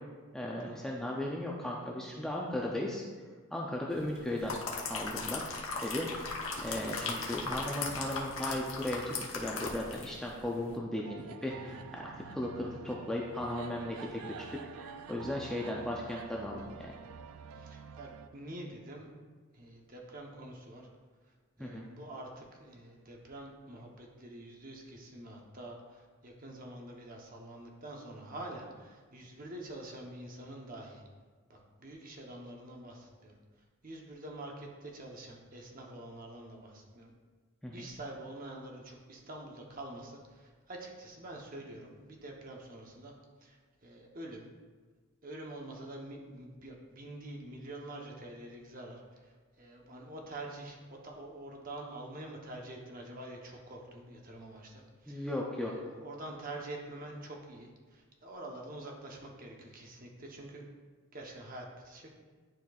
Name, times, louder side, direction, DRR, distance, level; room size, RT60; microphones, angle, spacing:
voice 1, 0.3-3.0 3.5-4.6 4.9-5.5 5.8-6.1 6.6-14.5 14.8-16.9 21.6-21.8 37.6-37.9 55.1-55.7, left 1 dB, 5° left, -3 dB, 0.4 m, -36 dB
sound 1, 4.1-10.2 10.5-10.7, left 4 dB, 65° left, 0.9 m, -38 dB
voice 2, 6.7-7.3 11.5-11.8 17.5-19.1 19.5-20.9 21.6-31.0 31.5-33.3 33.8-37.1 37.7-43.1 43.4-44.5 45.2-60.6 61.1-62.1, right 1 dB, 40° right, 0 dB, 0.9 m, -46 dB
sound 2, 11.0-18.3, right 6 dB, 85° right, 0.4 m, -48 dB
10.5 x 4.3 x 2.4 m, 1.5 s
head